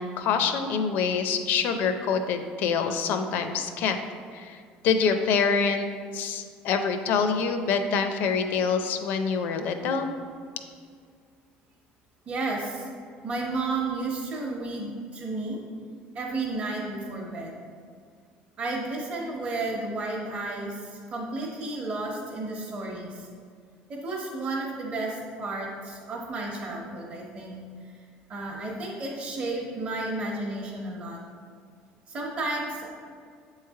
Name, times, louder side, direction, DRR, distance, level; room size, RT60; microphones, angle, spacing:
voice 1, 0.0-4.0 4.3-5.9 6.1-10.1, left 5 dB, 60° left, 7 dB, 0.5 m, -26 dB
voice 2, 12.3-12.9 13.2-15.6 16.1-17.6 18.6-23.3 23.9-27.6 28.3-31.2 32.1-32.9, right 2 dB, 30° right, -4 dB, 0.9 m, -32 dB
7.5 x 3.2 x 4.6 m, 2.2 s
cardioid pair, 140°, 4 cm